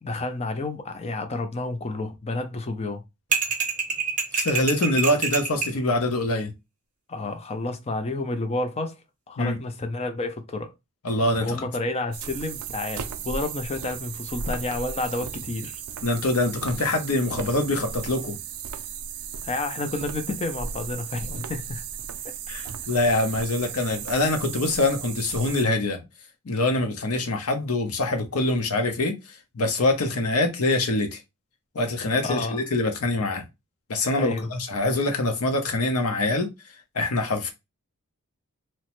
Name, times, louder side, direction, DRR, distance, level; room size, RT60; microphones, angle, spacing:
voice 1, 0.0-3.0 7.1-9.0 9.3-10.7 11.4-15.8 19.4-21.8 32.2-32.6 34.2-34.5, left 2 dB, 30° left, 0.5 m, -30 dB
sound 1, 3.3-5.8, right 6 dB, 35° right, 0.6 m, -26 dB
voice 2, 4.3-6.5 9.4-9.6 11.0-11.6 16.0-18.4 22.5-26.0 26.4-31.2 31.7-33.4 33.9-36.5 36.9-37.5, left 2 dB, 75° left, 0.7 m, -24 dB
sound 2, 12.1-25.6, right 7 dB, 75° right, 0.4 m, -35 dB
2.9 x 2.1 x 2.9 m
head